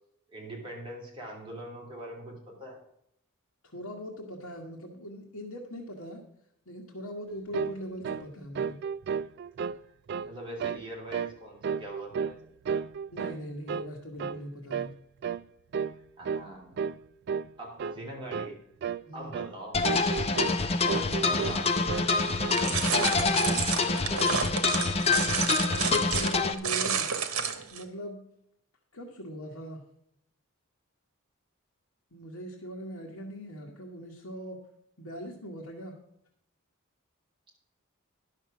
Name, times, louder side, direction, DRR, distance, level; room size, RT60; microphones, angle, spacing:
voice 1, 0.3-2.8 10.2-12.4 12.7-12.8 16.2-16.9 17.6-18.6 19.1-19.8 20.5-22.2 22.6-24.4, right 1 dB, 25° right, -3 dB, 3.3 m, -42 dB
voice 2, 3.6-6.2 6.6-8.8 13.1-14.9 19.1-19.3 25.4-27.1 27.7-28.2 28.9-29.8 32.1-34.6 35.0-36.0, equal, 80° left, -3 dB, 1.6 m, -41 dB
sound 1, 7.5-7.8 8.0-8.3 8.6-9.8 10.1-10.3 10.6-10.9 11.1-11.4 11.6-12.4 12.7-13.4 13.7-13.9 14.2-14.4 14.7-14.9 15.2-15.4 15.7-16.0 16.3-16.5 16.8-17.0 17.3-17.5 17.8-18.0 18.3-18.6 18.8-19.0 19.3-19.5 19.8-20.6 20.9-21.6 21.9-22.6 22.9-23.7, right 6 dB, 50° right, 0.3 m, -33 dB
sound 2, 19.7-26.5, left 4 dB, 30° left, 0.6 m, -26 dB
sound 3, 22.5-27.8, right 7 dB, 80° right, 1.2 m, -30 dB
11.0 x 6.7 x 6.1 m, 0.74 s
head